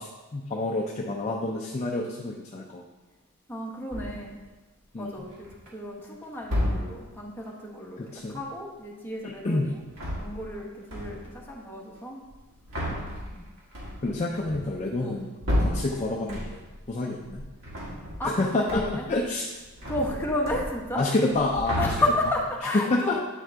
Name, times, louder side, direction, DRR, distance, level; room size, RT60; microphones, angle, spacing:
voice 1, 0.0-2.8 4.9-5.2 8.0-8.4 9.2-9.7 12.9-13.0 14.0-16.6 16.9-17.4 18.2-19.5 21.0-21.9 22.7-23.2, left 2 dB, 30° left, -1 dB, 0.5 m, -28 dB
voice 2, 3.5-4.4 5.0-9.8 10.2-12.2 13.3-13.4 15.0-15.2 18.2-18.3 18.7-19.1 19.8-21.1 21.8-23.2, left 1 dB, 10° left, -3 dB, 1.0 m, -32 dB
sound 1, 3.9-4.4 5.1-5.7 6.4-7.2 9.8-10.6 10.9-11.4 12.2-16.8 17.2-18.4 18.7-19.2 19.4-21.0 21.3-22.5, equal, 65° right, 1.6 m, -32 dB
9.0 x 3.7 x 3.4 m, 1.2 s
head